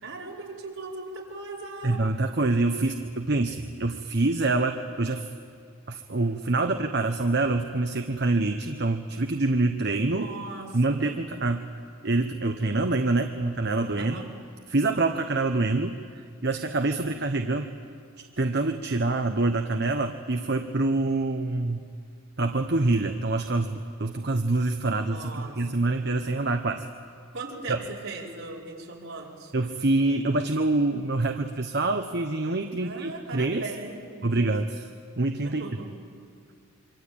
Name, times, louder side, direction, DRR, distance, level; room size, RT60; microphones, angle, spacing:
voice 1, 0.0-2.0 10.0-11.0 13.9-14.3 25.1-25.6 27.3-29.5 32.8-34.5 35.4-36.0, right 3 dB, 70° right, -3 dB, 5.1 m, -39 dB
voice 2, 1.8-5.3 5.9-10.3 10.7-11.6 12.0-14.2 14.7-17.8 18.4-21.8 22.4-26.8 27.7-27.8 29.5-33.6 34.2-34.9 35.2-35.6, right 2 dB, 50° right, 6 dB, 1.0 m, -26 dB
26.0 x 24.5 x 8.7 m, 2.3 s
head